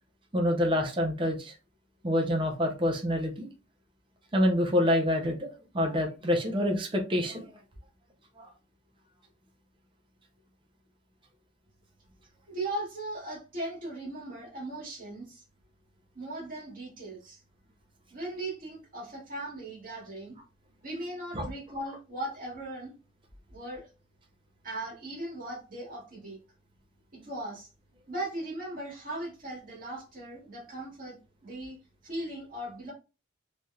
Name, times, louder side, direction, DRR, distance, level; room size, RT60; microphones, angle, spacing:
voice 1, 0.3-1.5 2.0-3.5 4.3-5.5 5.7-7.5 8.4-8.5 21.3-21.5, left 1 dB, 25° right, 2 dB, 0.6 m, -27 dB
voice 2, 12.5-15.4 16.2-17.4 18.1-20.4 20.8-23.0 23.5-23.9 24.6-26.4 27.1-27.7 28.1-31.8 32.0-32.9, right 1 dB, 45° right, -5 dB, 1.8 m, -38 dB
3.3 x 2.7 x 2.3 m, 0.30 s
head